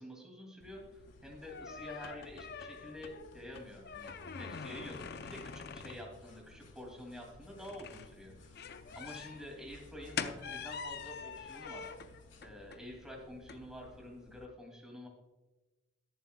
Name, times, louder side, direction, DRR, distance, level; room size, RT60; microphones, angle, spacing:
voice 1, 0.0-12.1 12.4-15.1, equal, 5° right, 0 dB, 2.4 m, -48 dB
sound 1, 0.6-14.4, left 6 dB, 55° left, 0.5 m, -46 dB
sound 2, 0.9-12.4, left 4 dB, 90° left, 1.7 m, -65 dB
21.0 x 7.4 x 2.2 m, 1.2 s
head